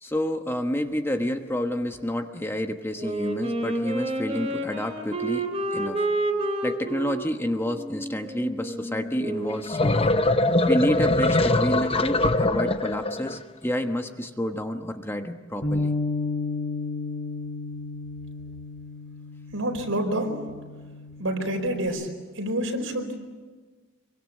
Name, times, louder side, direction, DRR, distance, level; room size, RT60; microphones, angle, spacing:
voice 1, 0.0-5.5 5.7-6.0 6.6-10.1 10.7-15.9, equal, 10° left, 5 dB, 1.2 m, -29 dB
Wind instrument woodwind instrument, 3.0-9.7, right 1 dB, 30° right, 3.2 m, -30 dB
sound 1, 9.5-13.4, left 2 dB, 30° left, 0.8 m, -22 dB
Bass guitar, 15.6-21.9, left 3 dB, 65° left, 6.3 m, -32 dB
voice 2, 19.5-20.4 21.2-22.1 22.3-23.3, right 1 dB, 85° right, 3 dB, 4.8 m, -28 dB
25.5 x 24.0 x 7.5 m, 1.4 s
head